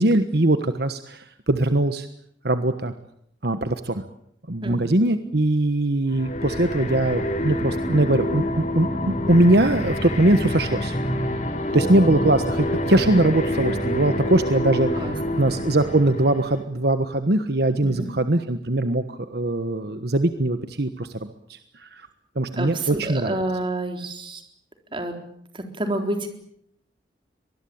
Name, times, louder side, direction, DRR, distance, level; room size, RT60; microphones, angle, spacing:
voice 1, 0.0-2.1 2.4-2.9 3.4-4.0 4.5-11.0 11.7-14.9 15.4-22.1 22.3-23.4, right 1 dB, 60° right, 9 dB, 1.3 m, -21 dB
voice 2, 4.6-4.9 11.7-11.8 15.0-15.8 17.8-18.1 22.6-24.4 24.9-25.1 25.5-26.3, right 1 dB, 30° right, 5 dB, 3.9 m, -29 dB
sound 1, 6.1-16.6, left 1 dB, 40° left, 3.2 m, -27 dB
24.0 x 20.5 x 8.7 m, 0.71 s
head